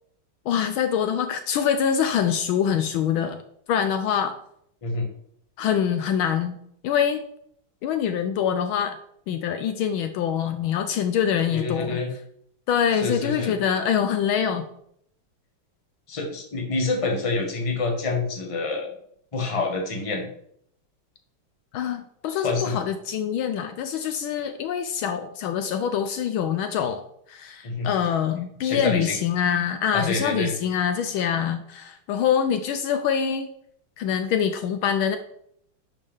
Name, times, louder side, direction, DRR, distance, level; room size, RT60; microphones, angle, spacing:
voice 1, 0.5-3.4 3.7-4.4 5.6-6.6 6.8-7.2 7.8-9.0 9.3-12.0 12.7-14.7 21.7-27.0 27.3-33.5 34.0-35.2, left 8 dB, 75° left, 8 dB, 1.4 m, -25 dB
voice 2, 11.5-12.1 13.0-13.5 16.1-18.9 19.3-20.3 22.4-22.8 27.6-27.9 28.6-29.2 29.9-30.5, left 3 dB, 20° left, 1 dB, 1.1 m, -27 dB
11.0 x 5.2 x 3.5 m, 0.70 s
omnidirectional pair, 2.4 m